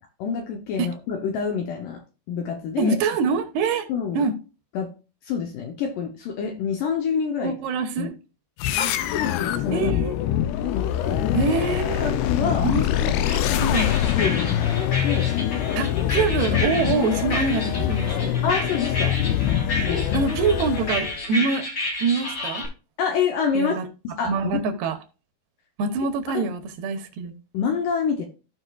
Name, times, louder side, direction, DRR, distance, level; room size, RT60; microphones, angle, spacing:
voice 1, 0.2-2.0 2.3-3.0 3.9-4.3 4.7-4.9 5.2-7.5 8.0-8.1 8.7-10.0 10.7-11.2 12.0-12.7 13.1-13.2 13.5-13.7 14.2-14.8 15.0-15.4 18.4-19.2 19.9-20.2 20.5-20.6 23.0-23.8 24.0-24.6 26.3-26.5 27.5-28.3, left 6 dB, 75° left, 2.1 m, -27 dB
voice 2, 2.8-3.9 4.2-4.4 7.4-8.1 9.7-10.1 11.3-12.1 12.6-13.2 13.6-13.9 15.8-18.3 20.1-21.7 22.0-22.6 23.6-23.9 24.3-25.0 25.8-27.3, right 4 dB, 80° right, 2.9 m, -25 dB
sound 1, 8.6-21.2, left 11 dB, 90° left, 2.7 m, -24 dB
sound 2, 13.2-22.7, left 1 dB, 40° left, 1.5 m, -31 dB
15.5 x 5.3 x 2.3 m
omnidirectional pair, 4.6 m